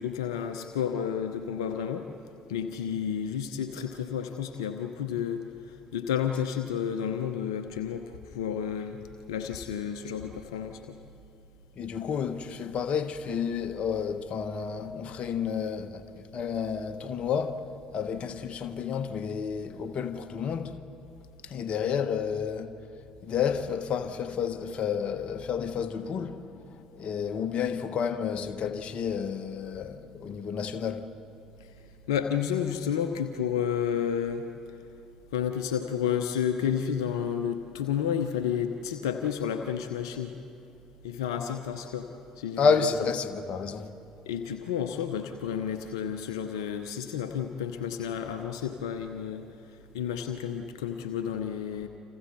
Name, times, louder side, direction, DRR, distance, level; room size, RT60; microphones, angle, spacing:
voice 1, 0.0-2.1 2.5-5.4 5.9-9.0 9.3-11.0 32.1-34.4 35.3-40.3 41.0-42.1 42.4-42.6 44.3-49.5 49.9-51.9, left 8 dB, 75° left, 0.9 m, -31 dB
voice 2, 11.8-17.6 17.9-20.8 21.4-22.8 23.2-31.1 42.6-43.9, left 6 dB, 45° left, 1.3 m, -30 dB
30.0 x 27.0 x 4.3 m
figure-of-eight pair, 50°, 3 cm